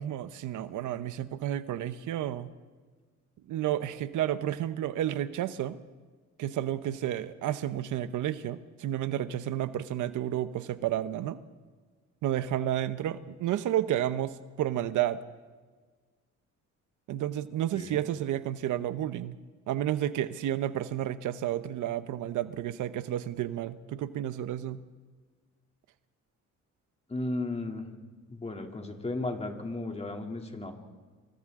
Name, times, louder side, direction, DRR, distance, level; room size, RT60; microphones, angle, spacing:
voice 1, 0.0-2.5 3.5-5.8 6.4-11.4 12.2-15.2 17.1-19.4 19.7-24.8, right 12 dB, 80° right, 13 dB, 0.9 m, -31 dB
voice 2, 27.1-27.9 28.3-30.7, left 2 dB, 20° left, 3 dB, 2.9 m, -34 dB
28.0 x 25.0 x 3.7 m, 1.4 s
cardioid pair, 90°, 30 cm